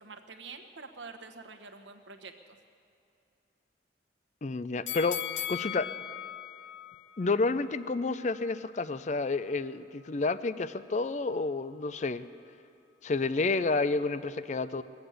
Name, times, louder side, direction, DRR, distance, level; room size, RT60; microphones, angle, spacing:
voice 1, 0.0-2.6, right 4 dB, 75° right, 6 dB, 1.2 m, -47 dB
voice 2, 4.4-5.2 5.5-5.9 7.2-12.2 13.0-14.8, left 3 dB, 40° left, 14 dB, 0.4 m, -30 dB
sound 1, 4.9-8.0 8.4-8.5, left 10 dB, 80° left, 0.7 m, -38 dB
21.5 x 8.0 x 8.0 m, 2.7 s
head